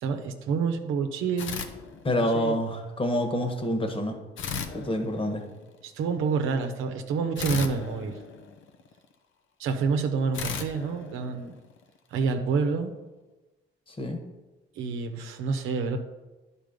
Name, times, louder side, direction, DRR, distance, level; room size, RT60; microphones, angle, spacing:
voice 1, 0.0-1.7 2.2-2.6 5.8-8.2 9.6-11.5 12.1-12.9 14.8-16.0, right 5 dB, 85° right, 5 dB, 0.8 m, -28 dB
sound 1, 1.4-2.5 4.4-5.7 7.3-9.0 10.3-11.9, left 6 dB, 75° left, 0.8 m, -36 dB
voice 2, 2.0-4.2 4.7-5.4 13.9-14.2, left 1 dB, 25° left, 4 dB, 1.4 m, -27 dB
10.5 x 4.4 x 5.2 m, 1.2 s
cardioid pair, 90°, 20 cm